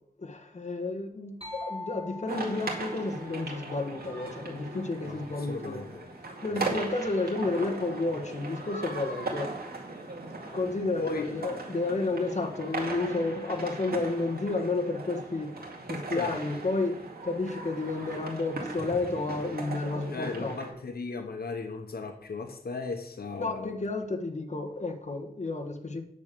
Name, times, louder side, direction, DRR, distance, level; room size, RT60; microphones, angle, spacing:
voice 1, 0.2-5.9 6.4-9.5 10.5-15.6 15.9-20.6 23.4-26.0, left 3 dB, 50° left, 2 dB, 1.6 m, -31 dB
sound 1, 1.4-5.1, left 2 dB, 40° right, 2.2 m, -44 dB
sound 2, 2.3-20.7, right 2 dB, 85° right, 2.2 m, -38 dB
voice 2, 5.0-6.1 6.7-6.8 11.0-11.3 16.1-16.4 20.1-23.7, left 3 dB, 85° left, 5 dB, 1.1 m, -36 dB
9.4 x 6.8 x 6.9 m, 0.75 s
wide cardioid pair, 85°, 16 cm